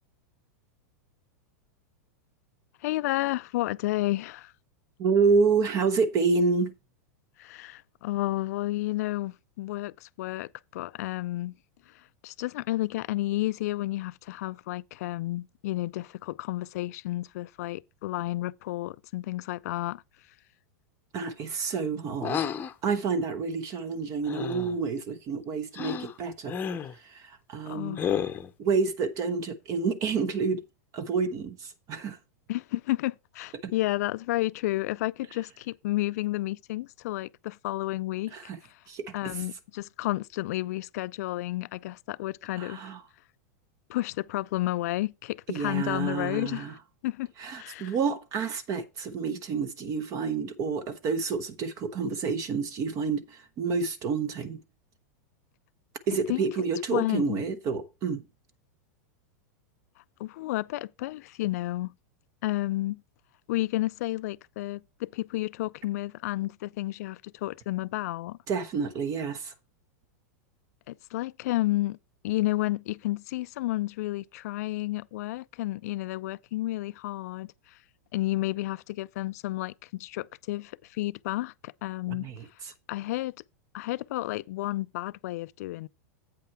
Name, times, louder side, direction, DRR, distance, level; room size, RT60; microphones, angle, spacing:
voice 1, 2.8-4.5 7.4-11.5 11.9-20.0 27.7-28.2 32.5-38.3 38.6-38.8 39.1-42.8 43.9-46.7 47.0-47.3 47.5-48.0 56.3-56.5 56.9-57.4 60.2-61.9 62.4-63.0 63.5-68.4 70.9-72.0 72.2-77.8 78.1-82.3 82.9-83.3 83.7-85.9, left 17 dB, 65° left, 0.4 m, -31 dB
voice 2, 5.0-6.7 21.1-22.5 22.8-26.6 27.0-28.0 28.6-30.6 30.9-32.2 33.6-33.7 38.3-38.6 38.9-39.4 42.6-43.0 45.5-46.7 47.4-54.6 56.1-58.2 68.5-69.5 82.1-82.7, right 5 dB, 35° right, 0.9 m, -29 dB
sound 1, 22.2-22.7 24.3-24.8 25.7-26.1 26.5-26.9 28.0-28.5, left 8 dB, 20° left, 0.8 m, -31 dB
8.4 x 5.7 x 4.5 m
hypercardioid pair, 125°, 9 cm